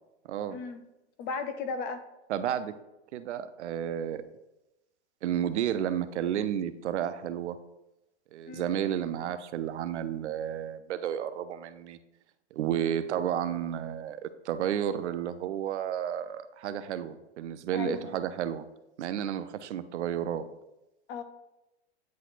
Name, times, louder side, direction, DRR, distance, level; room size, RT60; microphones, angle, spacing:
voice 1, 0.3-0.6 2.3-2.8 3.1-4.2 5.2-7.6 8.3-12.0 12.5-18.7 19.0-20.4, right 10 dB, 80° right, 12 dB, 0.5 m, -32 dB
voice 2, 1.2-2.0 8.5-8.7 12.8-13.0 17.7-18.1 21.1-21.2, left 5 dB, 30° left, 9 dB, 0.5 m, -36 dB
9.4 x 4.1 x 2.5 m, 0.95 s
hypercardioid pair, 125°, 34 cm